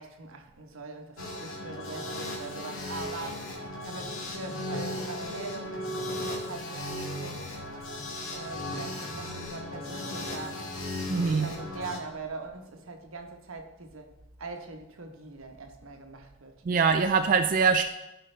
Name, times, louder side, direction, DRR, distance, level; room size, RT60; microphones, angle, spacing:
voice 1, 0.0-3.4 3.8-7.4 8.3-10.6 11.1-14.1 14.4-16.5, right 3 dB, 80° right, 1.1 m, -41 dB
sound 1, 1.2-12.0, left 1 dB, 75° left, 2.0 m, -36 dB
voice 2, 11.1-11.5 16.6-17.9, right 5 dB, 40° right, 0.3 m, -23 dB
15.0 x 5.1 x 3.3 m
head